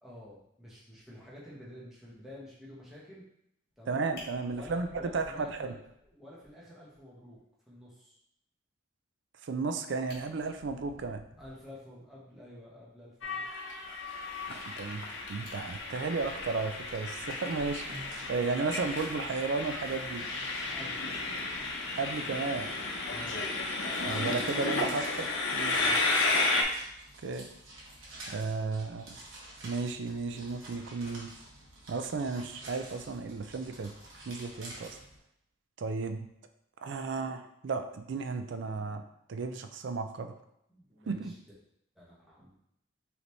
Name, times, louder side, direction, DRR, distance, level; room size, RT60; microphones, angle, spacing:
voice 1, 0.0-3.2 3.8-4.1 4.4-5.8 6.0-7.4 7.7-8.2 11.4-13.5 20.5-21.2 23.1-23.4 25.8-26.2 40.7-41.4 41.9-42.5, left 1 dB, ahead, -8 dB, 1.2 m, -50 dB
Fire, 3.7-3.8 4.1-6.1 6.4-6.5 6.9-7.0 7.3-7.4 9.6-9.7 10.0-11.7 14.5-15.1 15.4-17.6 18.9-19.1, left 1 dB, 50° left, 1.6 m, -54 dB
voice 2, 3.9-5.8 9.4-11.2 14.5-15.0 15.3-20.3 21.9-22.7 24.0-25.8 27.2-27.5 28.3-29.2 29.6-31.3 31.9-33.9 34.3-35.0 35.8-36.3 36.8-40.3 41.1-41.3, right 4 dB, 65° right, 7 dB, 0.4 m, -34 dB
Train, 13.2-26.6, left 3 dB, 75° left, 0.7 m, -33 dB
sound 1, 17.1-35.2, right 1 dB, 85° right, 1.3 m, -49 dB
5.0 x 3.4 x 3.1 m, 0.77 s
head